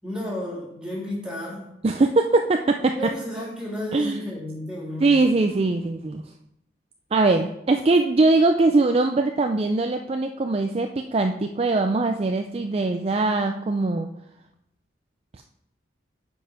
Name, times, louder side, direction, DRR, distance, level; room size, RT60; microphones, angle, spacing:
voice 1, 0.0-1.7 2.9-5.2, left 1 dB, 5° right, -7 dB, 3.4 m, -32 dB
voice 2, 1.8-2.9 3.9-4.2 5.0-6.2 7.1-14.1, right 3 dB, 35° right, 5 dB, 0.4 m, -21 dB
8.8 x 5.4 x 5.0 m, 0.82 s
head